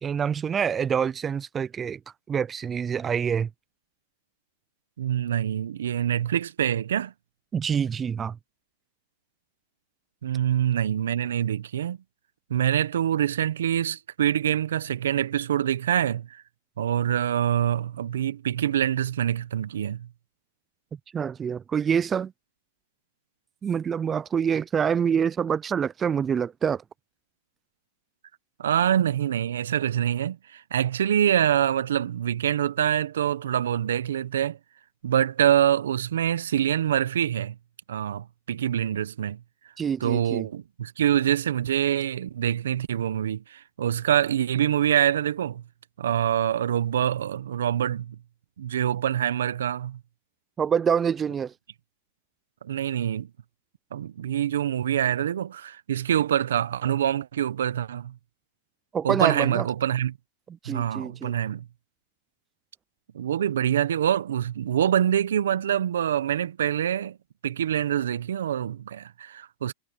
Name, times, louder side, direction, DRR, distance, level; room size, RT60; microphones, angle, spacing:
voice 1, 0.0-2.0 2.3-3.5 7.5-8.4 21.1-22.3 23.6-26.8 39.8-40.5 50.6-51.5 58.9-59.6 60.6-61.3, right 7 dB, 20° right, 0.4 m, -26 dB
voice 2, 5.0-7.1 10.2-12.0 12.5-16.4 16.8-20.1 28.6-34.6 35.0-37.6 37.9-39.4 40.0-45.6 46.0-48.2 48.6-50.0 52.6-53.3 53.9-58.2 59.0-60.2 60.6-61.7 63.1-67.2 67.4-69.7, right 10 dB, 80° right, 1.0 m, -25 dB
hypercardioid pair, 120°, 0 cm